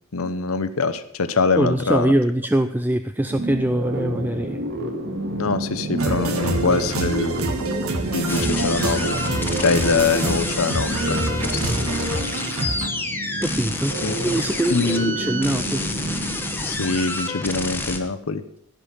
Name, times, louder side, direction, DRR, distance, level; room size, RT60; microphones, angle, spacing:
voice 1, 0.1-2.1 5.4-7.4 8.1-9.2 9.6-11.2 11.5-11.7 14.0-14.1 14.7-15.1 16.6-18.4, left 4 dB, 85° left, 12 dB, 0.9 m, -23 dB
voice 2, 1.6-4.6 13.4-13.9 14.2-16.1, right 1 dB, 10° right, 9 dB, 0.4 m, -23 dB
sound 1, 3.3-17.1, right 1 dB, 50° right, 1.9 m, -30 dB
sound 2, 6.0-12.9, right 2 dB, 90° right, 1.8 m, -26 dB
sound 3, 8.3-18.0, left 2 dB, 10° left, 1.3 m, -29 dB
16.0 x 5.6 x 8.6 m, 0.73 s
head